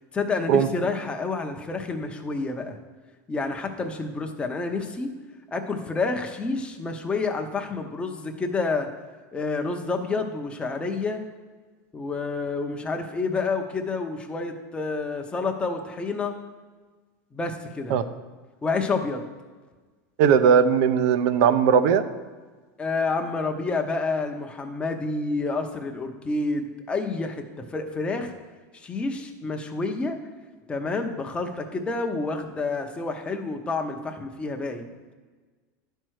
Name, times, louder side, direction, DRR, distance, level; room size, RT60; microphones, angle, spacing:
voice 1, 0.1-2.8 3.3-5.1 5.5-8.9 9.3-11.2 11.9-16.3 17.3-18.0 18.6-19.2 22.8-27.4 27.7-28.3 28.7-30.2 30.7-34.9, left 3 dB, 10° left, 4 dB, 0.8 m, -29 dB
voice 2, 20.2-22.0, right 7 dB, 60° right, 12 dB, 0.6 m, -18 dB
11.0 x 4.5 x 6.4 m, 1.4 s
supercardioid pair, 155°, 9 cm